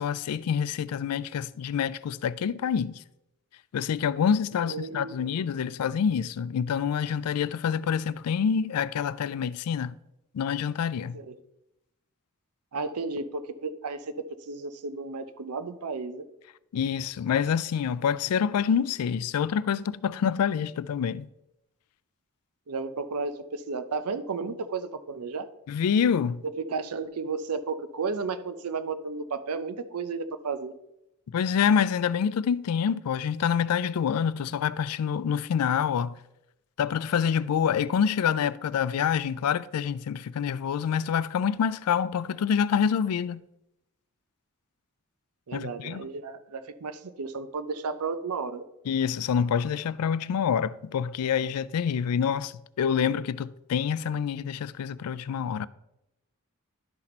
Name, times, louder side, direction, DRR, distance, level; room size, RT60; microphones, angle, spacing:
voice 1, 0.0-3.0 3.7-9.9 10.3-11.2 16.7-21.3 25.7-26.4 31.3-36.2 36.8-43.4 45.5-46.1 48.9-55.7, left 7 dB, 85° left, 0.3 m, -27 dB
voice 2, 4.6-5.4 11.1-11.3 12.7-14.1 14.5-16.2 22.7-25.5 26.4-30.7 45.5-48.6, right 4 dB, 85° right, 0.6 m, -33 dB
11.5 x 4.1 x 4.3 m
head